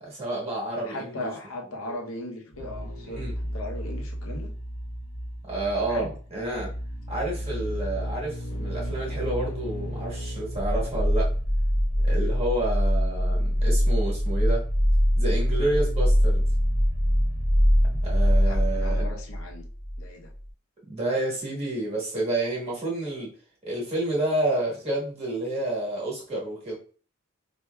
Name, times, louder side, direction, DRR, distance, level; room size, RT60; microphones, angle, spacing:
voice 1, 0.0-1.3 1.8-2.0 3.0-3.3 5.4-6.7 7.1-11.3 12.0-14.6 15.1-16.4 17.8-19.1 20.9-23.3 23.6-26.8, right 2 dB, 30° right, -4 dB, 1.3 m, -29 dB
voice 2, 0.7-3.3 3.5-4.5 5.9-6.1 12.2-12.3 18.4-19.7 20.0-20.3, left 1 dB, 75° left, 2 dB, 0.8 m, -37 dB
sound 1, 2.5-20.1 20.3-20.4, equal, 35° left, 0.7 m, -25 dB
4.4 x 2.6 x 2.2 m, 0.42 s
head